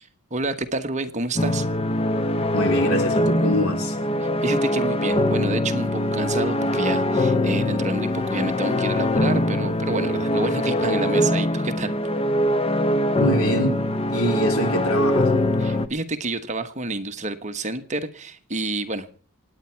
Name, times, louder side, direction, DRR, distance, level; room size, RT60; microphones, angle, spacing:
voice 1, 0.0-1.6 4.2-12.0 15.6-19.2, right 2 dB, 30° right, 8 dB, 1.2 m, -29 dB
sound 1, 1.4-15.9, left 1 dB, 25° left, 0.8 m, -22 dB
voice 2, 2.5-4.0 13.2-13.8 14.1-15.3, equal, 70° left, 4 dB, 3.8 m, -24 dB
27.0 x 9.5 x 4.5 m, 0.43 s
head